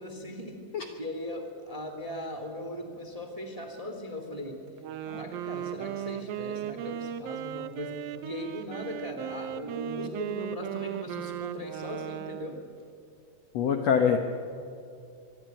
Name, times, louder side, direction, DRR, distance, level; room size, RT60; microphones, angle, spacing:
voice 1, 0.0-0.7 1.0-4.6 5.0-12.6, left 1 dB, 10° right, 5 dB, 1.8 m, -39 dB
Wind instrument woodwind instrument, 4.7-12.7, right 10 dB, 75° right, 2.6 m, -37 dB
voice 2, 13.5-14.2, left 7 dB, 65° left, 5 dB, 1.8 m, -23 dB
24.0 x 23.5 x 9.1 m, 2.5 s
omnidirectional pair, 4.3 m